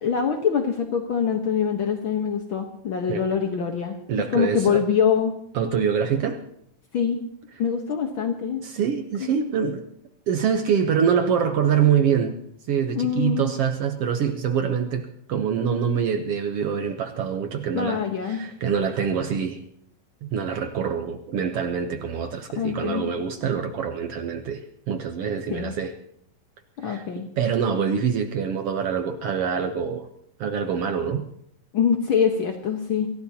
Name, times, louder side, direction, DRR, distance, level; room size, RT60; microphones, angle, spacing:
voice 1, 0.0-4.0 4.3-5.3 6.9-7.2 7.6-8.6 9.2-9.3 12.9-13.5 17.7-18.4 22.6-23.1 25.5-25.7 26.8-27.3 31.7-33.1, left 7 dB, 65° left, 3 dB, 1.3 m, -24 dB
voice 2, 4.1-4.8 5.5-6.4 8.6-9.9 10.3-12.4 12.7-19.6 20.2-25.9 26.8-27.0 27.4-30.1 30.4-31.3, right 7 dB, 75° right, 6 dB, 1.4 m, -25 dB
26.5 x 15.5 x 2.9 m, 0.71 s
omnidirectional pair, 4.0 m